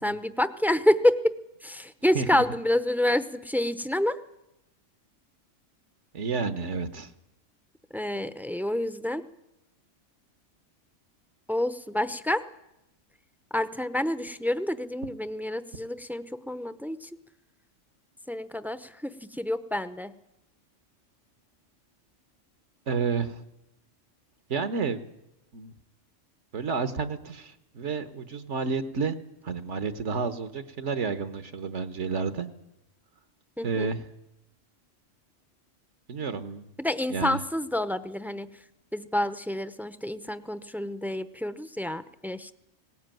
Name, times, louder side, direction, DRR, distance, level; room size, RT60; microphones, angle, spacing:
voice 1, 0.0-4.2 7.9-9.2 11.5-12.4 13.5-17.1 18.3-20.1 33.6-33.9 36.8-38.5 38.9-42.5, left 1 dB, ahead, 13 dB, 0.5 m, -28 dB
voice 2, 6.1-7.1 22.9-23.4 24.5-25.1 25.5-25.7 26.5-29.2 29.4-32.5 33.6-34.0 36.1-36.7 37.1-37.4, right 5 dB, 70° right, 10 dB, 1.4 m, -30 dB
19.0 x 18.0 x 9.1 m, 0.87 s
omnidirectional pair, 1.3 m